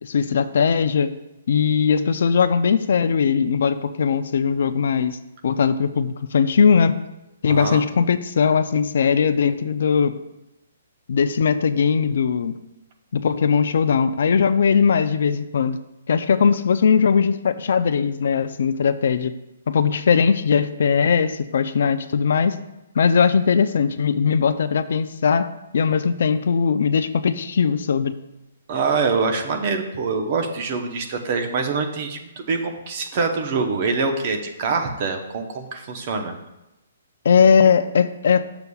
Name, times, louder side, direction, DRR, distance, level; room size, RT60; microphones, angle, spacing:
voice 1, 0.0-1.1 1.5-5.2 5.4-7.0 7.4-10.2 11.1-12.6 13.1-15.8 16.1-19.3 19.7-22.6 23.0-25.5 25.7-28.1 37.2-38.4, left 6 dB, 65° left, 11 dB, 0.4 m, -19 dB
voice 2, 7.5-7.8 28.7-36.4, right 4 dB, 40° right, 4 dB, 0.8 m, -24 dB
9.3 x 6.8 x 2.3 m, 0.95 s
hypercardioid pair, 160°, 0 cm